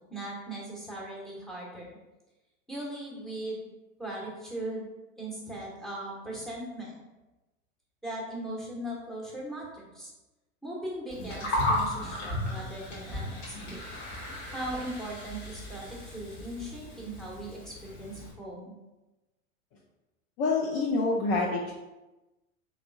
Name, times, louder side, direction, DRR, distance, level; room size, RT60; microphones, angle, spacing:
voice 1, 0.0-2.0 2.7-3.7 4.0-4.9 5.2-7.0 8.0-10.1 10.6-13.9 14.5-18.7, right 1 dB, ahead, -4 dB, 0.9 m, -39 dB
Gurgling, 11.1-18.3, left 1 dB, 65° left, 1.5 m, -35 dB
voice 2, 20.4-21.7, left 3 dB, 35° left, -2 dB, 0.5 m, -27 dB
3.4 x 3.2 x 2.5 m, 1.1 s
figure-of-eight pair, 90°, 40 cm